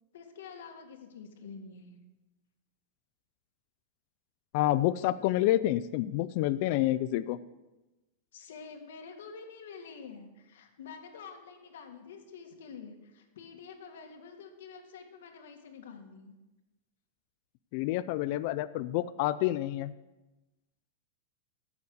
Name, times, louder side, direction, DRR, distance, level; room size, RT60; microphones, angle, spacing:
voice 1, 0.1-2.0 8.3-16.4, left 5 dB, 80° left, 4 dB, 2.0 m, -48 dB
voice 2, 4.5-7.4 17.7-19.9, left 14 dB, 40° left, 14 dB, 0.3 m, -28 dB
13.5 x 7.1 x 6.5 m, 1.1 s
supercardioid pair, 170°, 0 cm